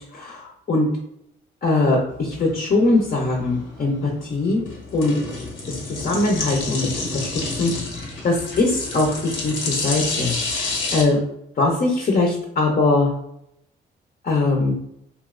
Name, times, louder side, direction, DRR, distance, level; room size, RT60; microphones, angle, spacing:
voice 1, 0.1-0.9 1.6-4.6 4.9-5.2 5.7-7.7 8.2-11.2 11.6-13.1 14.2-14.7, left 2 dB, 45° left, -1 dB, 0.8 m, -21 dB
sound 1, 2.1-11.0, left 3 dB, 80° left, 1.0 m, -29 dB
3.1 x 2.6 x 2.5 m, 0.77 s
cardioid pair, 90°, 20 cm